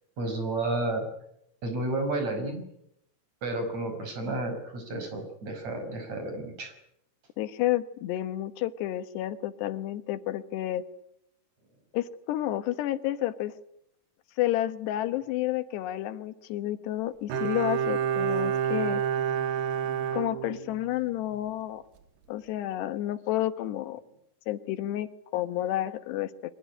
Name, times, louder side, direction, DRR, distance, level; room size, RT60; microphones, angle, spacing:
voice 1, 0.2-1.1 1.6-2.6 3.4-6.7, right 2 dB, 45° right, 7 dB, 6.4 m, -31 dB
voice 2, 7.4-10.8 11.9-13.5 14.4-19.0 20.1-21.8 22.3-24.0 24.5-26.3, left 13 dB, 90° left, 12 dB, 3.4 m, -30 dB
Bowed string instrument, 17.3-21.0 21.3-21.4, right 8 dB, 80° right, 3.5 m, -29 dB
23.5 x 19.5 x 9.9 m, 0.77 s
omnidirectional pair, 4.7 m